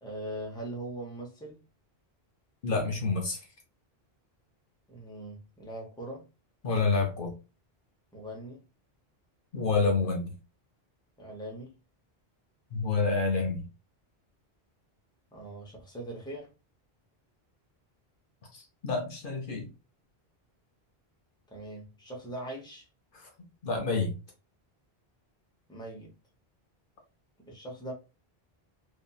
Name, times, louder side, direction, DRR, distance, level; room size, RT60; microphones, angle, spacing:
voice 1, 0.0-1.6 4.9-6.3 8.1-8.6 11.2-11.8 15.3-16.5 21.5-22.9 25.7-26.1 27.4-27.9, right 1 dB, 5° left, 0.7 m, -41 dB
voice 2, 2.6-3.4 6.6-7.3 9.5-10.3 12.7-13.7 18.5-19.7 23.6-24.1, left 4 dB, 60° left, 0.8 m, -28 dB
2.7 x 2.5 x 2.3 m
omnidirectional pair, 1.0 m